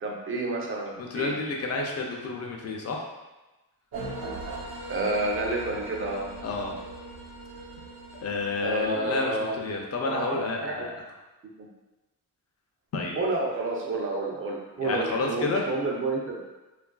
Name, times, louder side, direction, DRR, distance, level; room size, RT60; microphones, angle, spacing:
voice 1, 0.0-1.3 4.9-6.2 8.6-9.5 10.0-10.8 11.6-11.7 13.2-16.4, right 2 dB, 35° right, -1 dB, 0.5 m, -29 dB
voice 2, 1.0-3.1 6.4-6.8 8.2-10.9 12.9-13.2 14.8-15.6, left 3 dB, 40° left, 1 dB, 0.5 m, -30 dB
sound 1, 3.9-9.9, right 2 dB, 75° right, 0.8 m, -40 dB
3.0 x 2.4 x 2.2 m, 1.1 s
wide cardioid pair, 125°, 37 cm